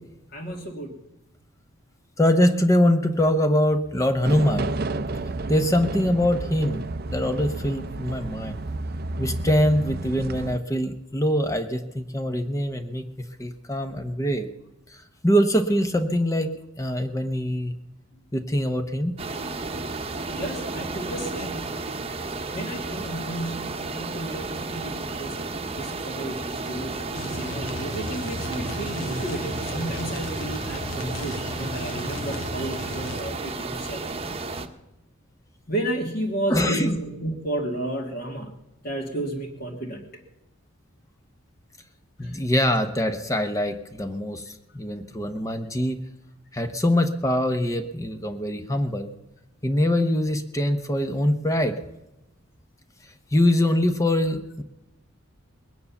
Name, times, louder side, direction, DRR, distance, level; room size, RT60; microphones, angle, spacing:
voice 1, 0.3-1.0 20.3-21.7 22.5-34.0 35.7-38.5 38.8-40.1 42.2-42.4, right 1 dB, 45° left, -2 dB, 2.0 m, -32 dB
voice 2, 2.2-4.7 5.5-6.8 7.1-8.6 9.2-14.5 14.9-15.0 15.2-16.5 16.8-17.8 18.3-19.1 36.5-37.0 42.2-46.0 46.5-49.1 49.6-51.7 53.3-54.6, left 1 dB, 15° left, 8 dB, 0.8 m, -23 dB
sound 1, 4.2-10.6, right 2 dB, 45° right, 0.6 m, -31 dB
sound 2, 19.2-34.7, right 3 dB, 30° right, 1.0 m, -32 dB
sound 3, 27.1-33.3, left 2 dB, 65° left, 1.6 m, -35 dB
21.0 x 9.4 x 7.1 m, 0.95 s
head